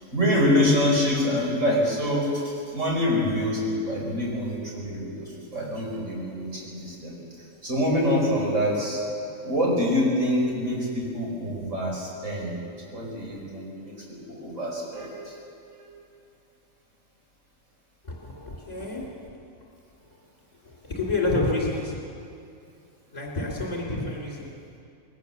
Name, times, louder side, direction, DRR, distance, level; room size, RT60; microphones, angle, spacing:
voice 1, 0.1-7.1 7.6-9.0 9.4-15.3 15.7-15.9, left 1 dB, 60° right, -4 dB, 5.8 m, -26 dB
voice 2, 18.0-19.1 20.8-22.0 23.1-24.5, left 2 dB, 30° left, -4 dB, 3.4 m, -28 dB
20.5 x 18.5 x 7.1 m, 2.5 s
omnidirectional pair, 1.4 m